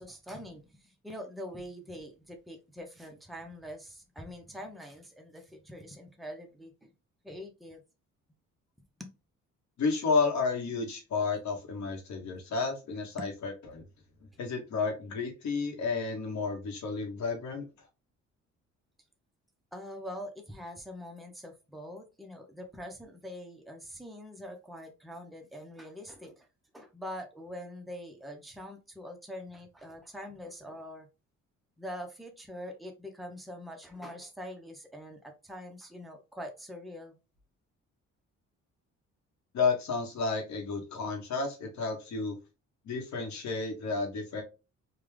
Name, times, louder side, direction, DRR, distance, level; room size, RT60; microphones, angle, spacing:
voice 1, 0.0-6.9 7.2-7.8 9.0-9.1 13.2-13.3 19.7-26.5 26.7-31.1 31.8-37.2, equal, ahead, 0.8 m, -44 dB
voice 2, 9.8-13.8 14.4-17.7 39.5-42.4 42.8-44.4, left 4 dB, 65° left, 1.2 m, -31 dB
3.5 x 2.3 x 3.2 m
cardioid pair, 90°, 30 cm